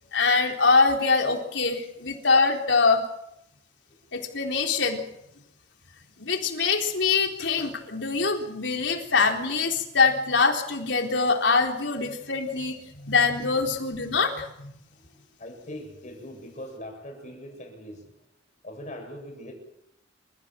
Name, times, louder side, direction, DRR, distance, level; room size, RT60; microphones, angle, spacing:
voice 1, 0.1-3.0 4.1-5.0 6.2-14.7, left 4 dB, 90° left, 2 dB, 4.0 m, -24 dB
voice 2, 14.9-18.1 18.6-19.5, left 1 dB, 40° left, 3 dB, 7.9 m, -42 dB
28.5 x 15.5 x 7.7 m, 0.79 s
head